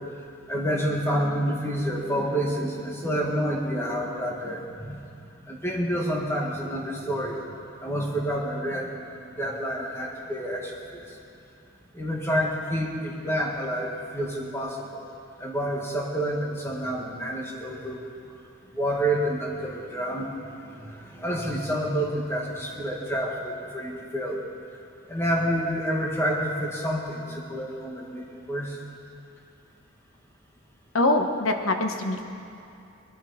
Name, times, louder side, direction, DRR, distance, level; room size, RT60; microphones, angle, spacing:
voice 1, 0.5-5.0 5.5-7.4 7.8-8.9 9.4-11.0 11.9-15.0 15.4-18.1 18.7-24.4 25.1-28.8, equal, 15° left, -2 dB, 1.9 m, -28 dB
voice 2, 30.9-32.2, left 2 dB, 85° left, 5 dB, 1.2 m, -23 dB
20.5 x 13.0 x 4.3 m, 2.7 s
head